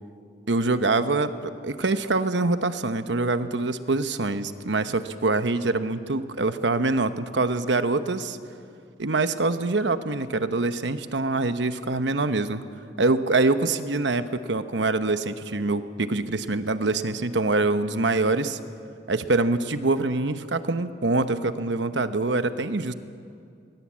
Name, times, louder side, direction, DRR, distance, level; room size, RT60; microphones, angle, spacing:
voice 1, 0.5-8.4 9.0-12.6 13.0-18.6 19.1-22.9, right 3 dB, 80° right, 10 dB, 1.0 m, -25 dB
21.5 x 21.0 x 8.7 m, 2.4 s
head